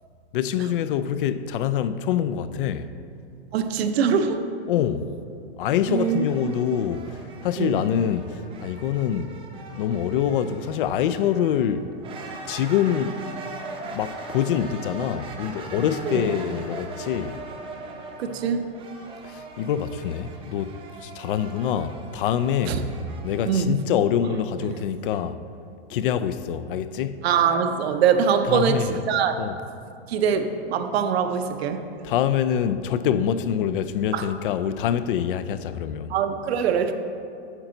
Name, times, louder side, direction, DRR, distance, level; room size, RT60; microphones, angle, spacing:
voice 1, 0.3-2.9 4.7-5.1 5.6-9.4 9.7-11.9 12.5-13.2 13.8-17.4 19.2-22.8 23.2-25.4 25.9-27.3 28.4-28.9 29.4-29.6 32.0-36.1, left 9 dB, 55° left, 0.4 m, -25 dB
voice 2, 3.5-4.4 5.9-6.8 7.6-7.8 16.1-16.3 18.2-18.6 22.7-22.8 23.5-23.7 27.2-29.3 30.1-31.8 34.1-34.2 36.1-36.9, right 7 dB, 65° right, 0.8 m, -23 dB
sound 1, 5.6-23.5, right 3 dB, 15° right, 0.7 m, -41 dB
9.0 x 6.9 x 3.8 m
hypercardioid pair, 150°, 34 cm